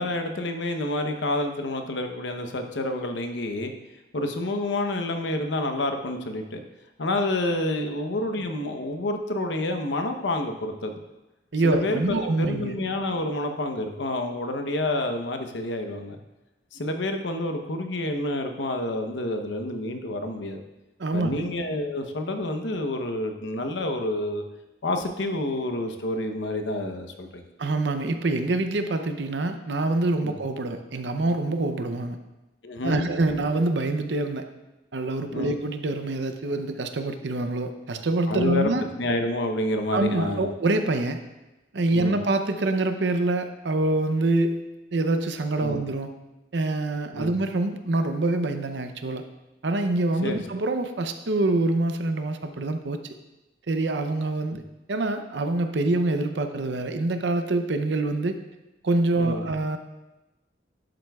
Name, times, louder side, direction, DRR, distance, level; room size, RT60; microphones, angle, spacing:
voice 1, 0.0-3.7 4.1-6.6 7.0-11.0 11.6-16.2 16.7-20.6 21.1-24.4 24.8-27.4 30.2-30.4 32.6-33.1 35.3-35.5 38.3-38.7 39.0-40.5 41.9-42.1 45.6-45.8 47.1-47.3 50.2-50.4 59.2-59.5, left 1 dB, 80° left, 6 dB, 0.9 m, -28 dB
voice 2, 11.5-12.7 21.0-21.4 27.6-32.2 32.8-34.4 34.9-38.8 39.9-41.2 41.7-44.6 44.9-46.1 46.5-49.2 49.6-53.0 53.7-54.6 54.9-58.4 58.8-59.8, right 2 dB, 70° right, 8 dB, 0.6 m, -25 dB
11.5 x 7.7 x 2.4 m, 1.0 s
head